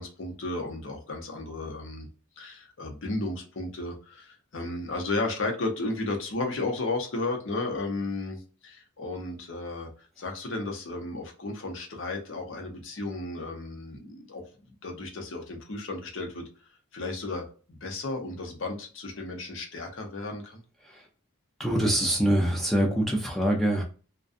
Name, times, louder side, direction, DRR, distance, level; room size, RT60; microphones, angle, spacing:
voice 1, 0.0-2.1 2.4-9.9 10.2-14.4 14.8-16.5 16.9-20.6, left 2 dB, 65° left, 2 dB, 0.7 m, -34 dB
voice 2, 21.6-23.8, right 1 dB, ahead, -1 dB, 0.4 m, -24 dB
2.4 x 2.2 x 2.4 m, 0.38 s
head